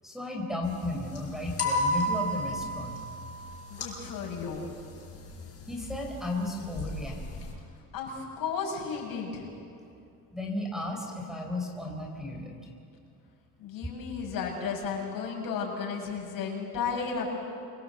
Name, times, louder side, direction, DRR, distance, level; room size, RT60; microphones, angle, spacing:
voice 1, 0.0-3.0 5.7-7.5 10.3-12.6, left 1 dB, ahead, -1 dB, 4.5 m, -34 dB
sound 1, 0.6-7.5, left 1 dB, 40° left, 7.6 m, -34 dB
voice 2, 3.7-4.7 7.9-9.5 13.6-17.3, left 5 dB, 70° left, -1 dB, 7.5 m, -34 dB
28.0 x 24.5 x 8.1 m, 2.5 s
cardioid pair, 145°, 36 cm